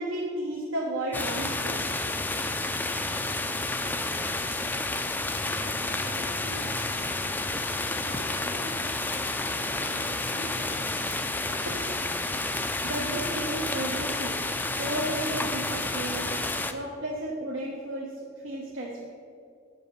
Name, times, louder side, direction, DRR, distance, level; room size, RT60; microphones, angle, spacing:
voice 1, 0.0-1.8 2.7-2.8 11.7-11.8 12.8-14.4 14.8-16.3 16.7-18.2 18.4-19.1, right 1 dB, 80° right, -2 dB, 1.0 m, -33 dB
sound 1, 1.1-16.7, left 2 dB, 10° left, 0.3 m, -30 dB
voice 2, 3.4-4.3 5.5-7.4 8.0-11.0 11.4-11.8, right 1 dB, 50° right, -4 dB, 1.3 m, -47 dB
7.7 x 5.2 x 6.5 m, 2.3 s
head